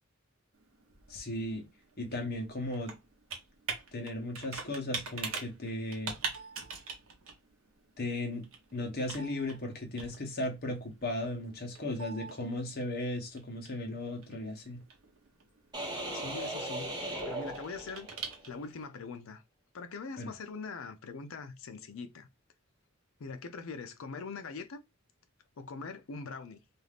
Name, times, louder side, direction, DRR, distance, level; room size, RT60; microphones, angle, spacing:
Computer keyboard, 0.5-18.8, right 5 dB, 70° right, 0.8 m, -45 dB
voice 1, 1.1-1.6 2.0-2.9 3.9-6.2 8.0-8.4 8.7-14.8 20.2-20.3, left 1 dB, 50° left, 0.9 m, -36 dB
sound 1, 15.7-18.4, right 1 dB, 20° right, 1.0 m, -38 dB
voice 2, 16.1-16.9 17.3-18.1 18.4-19.4 19.7-22.3 23.2-24.8 25.6-26.6, left 4 dB, 70° left, 0.5 m, -42 dB
2.6 x 2.4 x 3.3 m
head